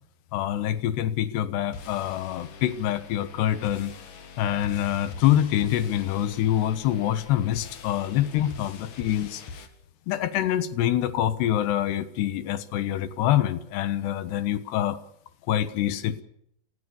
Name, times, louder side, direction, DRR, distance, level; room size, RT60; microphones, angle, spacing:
voice 1, 0.3-3.9 4.4-9.4 10.1-15.0 15.5-16.2, left 12 dB, 75° left, 13 dB, 3.3 m, -25 dB
sound 1, 1.7-9.7, left 4 dB, 50° left, 3.0 m, -44 dB
29.5 x 19.5 x 7.1 m, 0.77 s
omnidirectional pair, 4.9 m